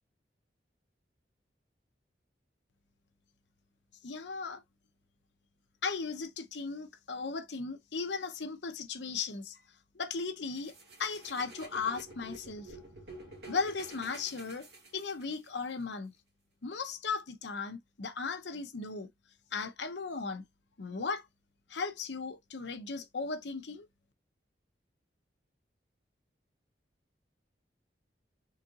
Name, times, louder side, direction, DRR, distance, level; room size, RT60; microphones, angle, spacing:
voice 1, 4.0-4.6 5.8-9.6 9.9-12.8 13.5-14.7 14.9-16.1 16.6-19.1 19.5-20.4 20.8-21.3 21.7-23.9, left 4 dB, 80° left, 0.8 m, -36 dB
sound 1, 10.5-15.5, right 1 dB, 65° right, 2.1 m, -49 dB
4.3 x 3.8 x 2.5 m
head